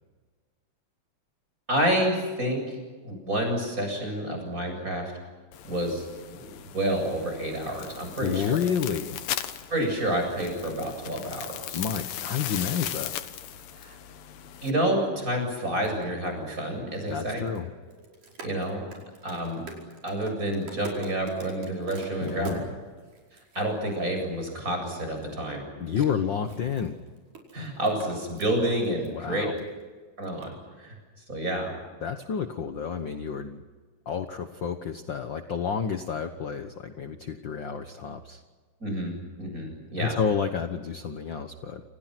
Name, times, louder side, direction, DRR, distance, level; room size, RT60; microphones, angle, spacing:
voice 1, 1.7-2.8 3.0-5.1 5.6-8.6 9.7-11.8 13.7-13.9 14.6-17.4 18.4-18.9 19.2-19.6 20.0-22.6 23.5-25.6 26.0-26.1 27.5-29.5 30.2-31.0 31.3-31.7 38.8-40.2, right 1 dB, 25° right, 3 dB, 8.2 m, -29 dB
sound 1, 5.5-14.7, left 11 dB, 85° left, 3.0 m, -38 dB
voice 2, 8.2-9.2 11.7-13.2 17.1-17.7 22.2-22.7 25.8-27.0 29.1-29.6 32.0-33.6 34.0-38.4 40.0-41.8, left 7 dB, 60° left, 7 dB, 1.2 m, -30 dB
sound 2, 13.5-13.6 15.3-24.5 25.2-25.3 26.3-29.1 29.4-29.8 30.2-30.5, right 3 dB, 70° right, 6.6 m, -45 dB
28.5 x 28.5 x 6.1 m, 1.4 s
omnidirectional pair, 3.9 m